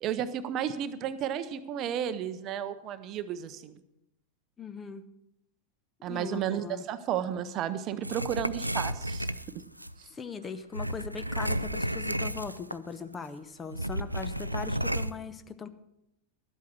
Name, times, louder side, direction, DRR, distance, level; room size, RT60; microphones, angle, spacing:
voice 1, 0.0-3.7 6.0-9.3 9.5-9.6 10.0-10.1, right 9 dB, 35° right, 13 dB, 0.7 m, -33 dB
voice 2, 4.6-5.0 6.1-6.8 10.1-15.7, left 6 dB, 20° left, 11 dB, 0.7 m, -39 dB
sound 1, 8.0-9.9 10.7-12.9 13.1-13.3 13.7-15.1, right 1 dB, 90° right, 0.3 m, -32 dB
12.0 x 8.4 x 6.2 m, 0.83 s
figure-of-eight pair, 90°, 0 cm